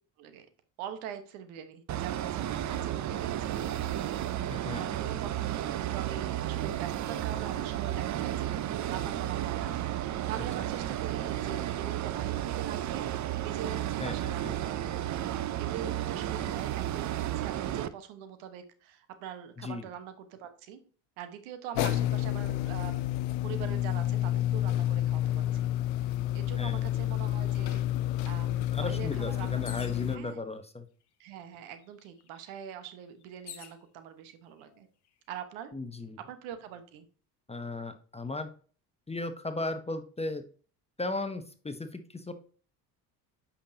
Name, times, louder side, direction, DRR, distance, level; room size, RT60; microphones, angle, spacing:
voice 1, 0.8-4.2 4.7-9.8 10.3-13.1 13.4-20.8 21.2-23.1 23.4-27.9 28.2-30.4 31.2-34.9 35.3-35.7 36.2-37.1, right 9 dB, 70° right, 9 dB, 1.3 m, -43 dB
sound 1, 1.9-17.9, right 12 dB, 35° right, 0.6 m, -33 dB
voice 2, 4.5-4.9 14.0-14.5 19.6-19.9 26.6-26.8 28.7-30.9 35.7-36.2 37.5-38.5 39.1-40.4 41.0-42.3, left 2 dB, 15° left, 8 dB, 0.8 m, -36 dB
sound 2, 21.7-30.2, left 13 dB, 85° left, 0.6 m, -29 dB
sound 3, 29.6-30.1 31.0-31.1 31.4-33.8 34.6-35.1, left 10 dB, 50° left, 1.3 m, -49 dB
8.4 x 5.7 x 2.8 m, 0.41 s
hypercardioid pair, 75°, 49 cm